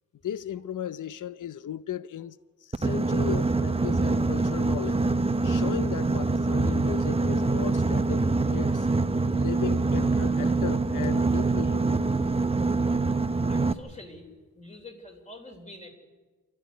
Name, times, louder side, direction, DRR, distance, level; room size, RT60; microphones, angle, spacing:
voice 1, 0.2-5.0 5.4-8.9 9.2-12.0, left 10 dB, 65° left, 0.6 m, -36 dB
Boat Water vehicle, 2.7-13.7, right 3 dB, 15° right, 0.6 m, -25 dB
voice 2, 13.5-14.3 14.6-15.9, left 2 dB, 20° left, 3.5 m, -45 dB
27.5 x 13.0 x 9.3 m
wide cardioid pair, 150°, 34 cm